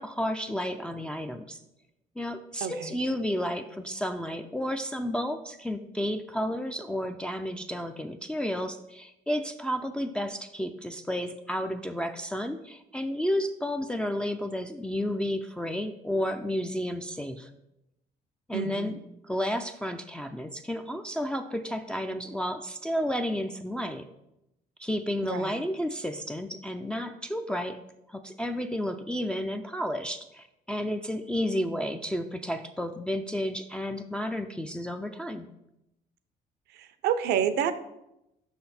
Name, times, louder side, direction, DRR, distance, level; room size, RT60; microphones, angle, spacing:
voice 1, 0.0-1.6 2.2-17.5 18.5-18.9 19.3-24.1 24.8-27.8 28.1-35.5, equal, 5° left, 5 dB, 0.4 m, -32 dB
voice 2, 2.6-3.0 18.5-19.0 25.2-25.6 36.7-37.7, right 8 dB, 75° right, 12 dB, 0.6 m, -29 dB
5.9 x 5.8 x 4.2 m, 0.87 s
cardioid pair, 110°, 17 cm